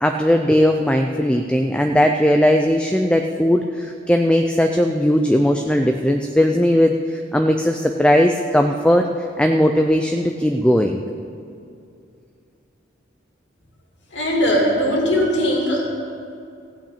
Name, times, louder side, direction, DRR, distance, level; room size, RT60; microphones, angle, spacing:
voice 1, 0.0-9.1 9.4-11.0, equal, 5° left, 4 dB, 0.4 m, -18 dB
voice 2, 14.1-15.8, equal, 65° left, -1 dB, 2.6 m, -19 dB
15.5 x 5.7 x 8.7 m, 2.5 s
head